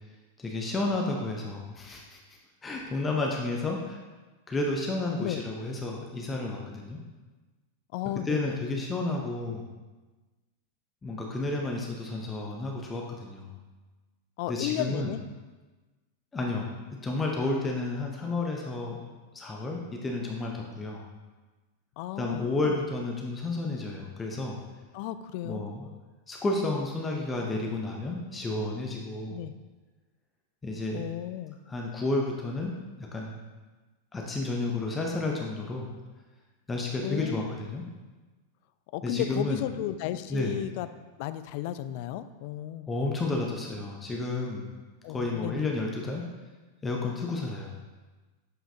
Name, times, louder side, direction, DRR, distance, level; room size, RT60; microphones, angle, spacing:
voice 1, 0.4-2.2 2.6-4.0 4.5-7.0 8.3-9.6 11.0-13.5 14.5-15.1 16.3-16.7 17.0-19.0 19.3-21.0 22.2-24.6 25.4-25.9 26.3-29.4 30.6-31.0 31.7-33.4 34.1-35.9 36.7-37.8 39.0-39.6 40.3-40.6 42.9-44.7 45.1-46.3 46.8-47.7, left 2 dB, 15° left, -1 dB, 0.8 m, -31 dB
voice 2, 7.9-8.6 14.4-15.2 22.0-22.9 24.9-25.6 29.3-29.5 30.9-31.6 37.0-37.4 38.9-40.9 41.2-42.9 45.0-45.7, left 13 dB, 45° left, 12 dB, 0.3 m, -34 dB
7.4 x 5.6 x 2.8 m, 1.2 s
figure-of-eight pair, 90°, 0 cm